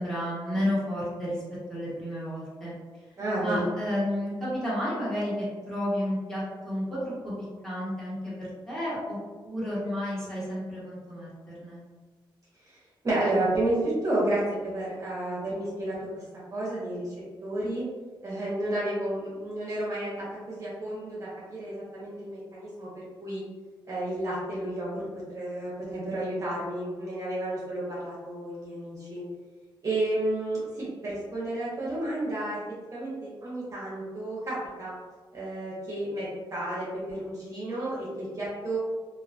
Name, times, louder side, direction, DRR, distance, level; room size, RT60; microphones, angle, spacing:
voice 1, 0.0-1.4 1.7-2.7 3.4-7.3 7.6-9.2 9.4-11.3 11.6-11.8, equal, 5° left, -10 dB, 1.1 m, -31 dB
voice 2, 3.2-3.6 12.6-12.8 13.0-16.2 16.5-17.1 17.4-17.9 18.2-23.4 23.9-25.1 25.3-29.2 29.8-32.6 32.9-34.9 35.3-38.8, right 1 dB, 40° right, -7 dB, 0.7 m, -31 dB
2.3 x 2.2 x 2.4 m, 1.4 s
wide cardioid pair, 125°, 9 cm